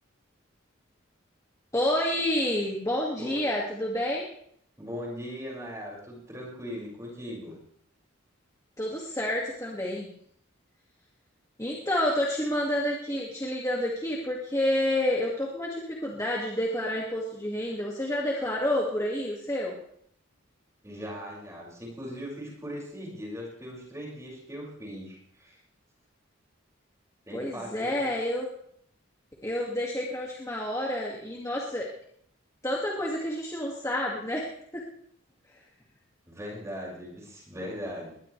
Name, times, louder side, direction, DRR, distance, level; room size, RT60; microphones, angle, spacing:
voice 1, 1.7-4.3 8.8-10.1 11.6-19.8 27.3-28.5 29.4-31.9 32.6-34.8 35.5-35.6, left 1 dB, 15° left, -3 dB, 2.2 m, -29 dB
voice 2, 4.8-7.6 20.8-25.6 27.3-28.1 36.3-38.1, equal, 15° right, -3 dB, 6.1 m, -39 dB
21.0 x 20.0 x 3.4 m, 0.68 s
head